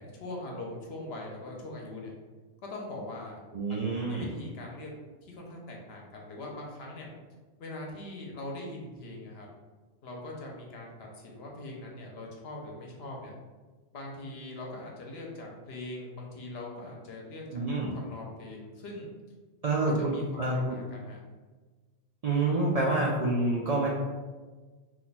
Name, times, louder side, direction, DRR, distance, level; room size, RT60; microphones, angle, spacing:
voice 1, 0.0-2.1 2.6-3.4 3.7-4.9 5.2-7.1 7.6-9.5 10.0-13.3 13.9-17.7 17.9-19.1 19.7-21.2, left 2 dB, 70° left, -1 dB, 0.9 m, -42 dB
voice 2, 3.5-4.3 17.5-17.9 19.6-20.8 22.2-23.9, right 2 dB, 55° right, -5 dB, 0.4 m, -27 dB
2.8 x 2.2 x 4.0 m, 1.3 s
omnidirectional pair, 1.1 m